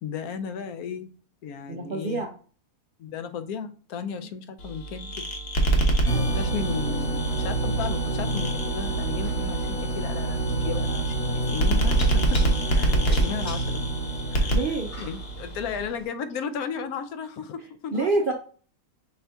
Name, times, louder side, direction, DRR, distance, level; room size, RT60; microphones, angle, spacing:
voice 1, 0.0-1.1 1.4-2.2 3.0-5.3 5.9-12.4 12.7-13.8 14.3-14.6 15.0-18.1, left 6 dB, 85° left, 1.1 m, -35 dB
voice 2, 1.7-2.3 14.5-14.9 17.9-18.3, right 3 dB, 65° right, 0.5 m, -26 dB
sound 1, 4.6-15.9, right 2 dB, 50° left, 0.9 m, -27 dB
sound 2, 6.1-15.4, right 2 dB, 65° left, 2.6 m, -28 dB
sound 3, 6.2-16.1, left 1 dB, 25° left, 1.3 m, -46 dB
5.8 x 2.6 x 3.4 m
omnidirectional pair, 1.5 m